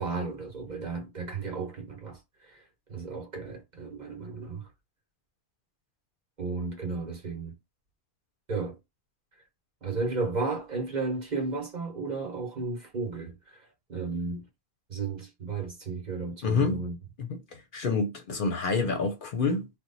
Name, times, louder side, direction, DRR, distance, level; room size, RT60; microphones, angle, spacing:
voice 1, 0.0-4.7 6.4-7.5 8.5-8.8 9.8-14.5 14.9-17.0, right 3 dB, 45° right, 1.0 m, -34 dB
voice 2, 16.4-16.8 17.2-19.7, left 4 dB, 60° left, 0.7 m, -28 dB
2.9 x 2.1 x 3.9 m
omnidirectional pair, 1.1 m